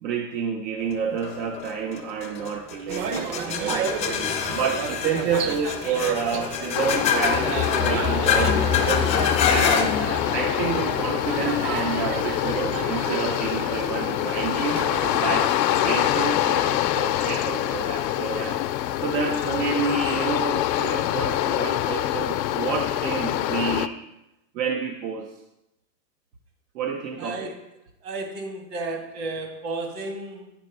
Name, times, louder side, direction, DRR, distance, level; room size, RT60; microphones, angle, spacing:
voice 1, 0.0-3.9 4.5-9.1 9.5-14.8 15.2-15.5 15.8-18.6 19.0-24.0 24.5-25.3 26.7-27.5, right 6 dB, 85° right, 4 dB, 1.0 m, -29 dB
sound 1, 1.2-12.5, left 7 dB, 15° left, 0.4 m, -27 dB
sound 2, 2.9-16.8, right 6 dB, 40° right, 0.8 m, -33 dB
sound 3, 6.7-23.9, left 13 dB, 90° left, 0.6 m, -25 dB
voice 2, 27.2-27.6 28.0-30.5, right 2 dB, 55° right, 3 dB, 2.1 m, -33 dB
9.4 x 4.5 x 5.3 m, 0.89 s
supercardioid pair, 130°, 49 cm